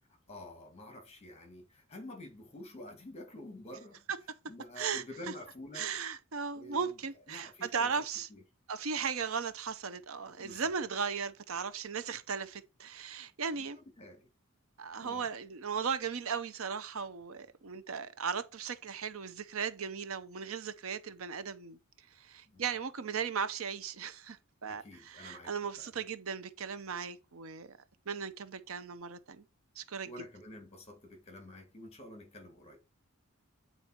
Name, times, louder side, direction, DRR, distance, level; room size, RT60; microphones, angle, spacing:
voice 1, 0.3-4.1 4.5-5.9 6.5-7.0 7.3-7.9 8.3-8.4 10.4-10.7 13.5-14.3 15.0-15.3 22.5-22.6 24.6-25.9 30.0-32.8, left 1 dB, 30° left, 1.9 m, -49 dB
voice 2, 5.7-8.3 8.7-13.8 14.8-21.8 22.1-27.8 28.1-29.4 29.8-30.1, right 6 dB, 70° right, 0.7 m, -37 dB
8.8 x 4.1 x 4.5 m
head